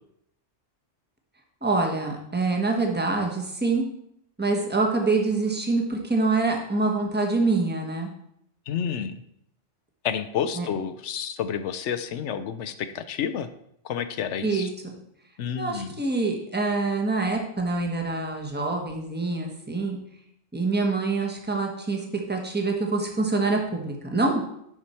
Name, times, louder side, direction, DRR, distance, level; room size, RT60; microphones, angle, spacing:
voice 1, 1.6-3.8 4.4-8.1 10.6-10.7 14.4-14.9 15.6-20.0 20.5-24.4, right 3 dB, 10° right, 2 dB, 1.1 m, -25 dB
voice 2, 8.7-9.2 10.0-13.5 13.8-14.7 15.4-15.9, left 8 dB, 75° left, 11 dB, 0.9 m, -30 dB
11.0 x 4.7 x 4.3 m, 0.75 s
omnidirectional pair, 1.2 m